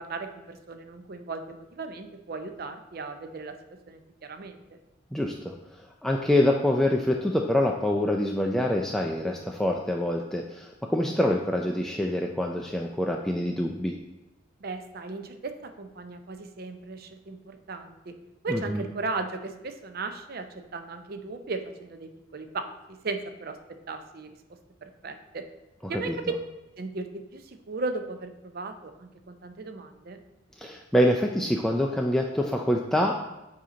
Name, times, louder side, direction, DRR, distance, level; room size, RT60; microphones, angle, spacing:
voice 1, 0.0-3.5 3.9-4.8 14.6-18.1 18.4-20.5 20.7-23.6 23.9-24.3 24.8-25.4 25.9-26.2 26.8-30.2, right 3 dB, 50° right, 7 dB, 0.5 m, -36 dB
voice 2, 5.1-13.9 18.5-18.8 25.8-26.2 30.6-33.4, left 1 dB, ahead, 0 dB, 0.3 m, -26 dB
7.5 x 2.8 x 5.0 m, 0.97 s
head